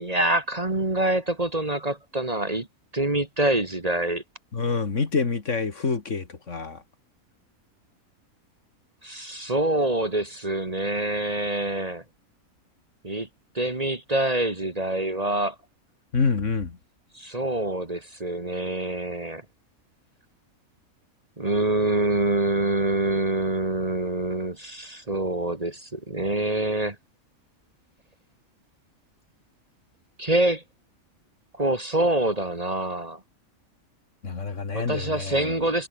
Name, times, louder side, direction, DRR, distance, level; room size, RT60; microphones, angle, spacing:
voice 1, 0.0-2.7 2.9-4.2 9.0-12.0 13.0-13.3 13.6-15.6 17.1-19.4 21.4-27.0 30.2-30.6 31.6-33.2 34.7-35.9, right 1 dB, 25° right, 2.0 m, -25 dB
voice 2, 4.5-6.8 16.1-16.8 34.2-35.6, left 4 dB, 55° left, 2.3 m, -27 dB
omnidirectional pair, 1.5 m